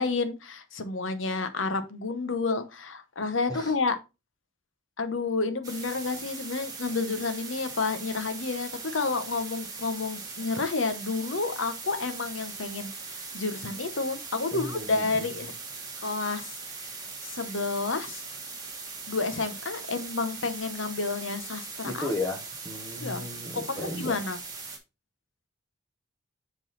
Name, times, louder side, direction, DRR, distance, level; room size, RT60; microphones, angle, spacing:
voice 1, 0.0-4.0 5.0-12.9 13.3-15.5 16.0-16.5 17.2-18.2 19.1-22.1 23.0-23.3 23.5-24.4, left 3 dB, 90° left, 1.0 m, -30 dB
sound 1, 5.6-24.8, right 4 dB, 20° right, 1.6 m, -40 dB
voice 2, 14.5-15.3 21.8-24.1, left 2 dB, 20° left, 1.1 m, -35 dB
7.4 x 4.0 x 4.1 m
head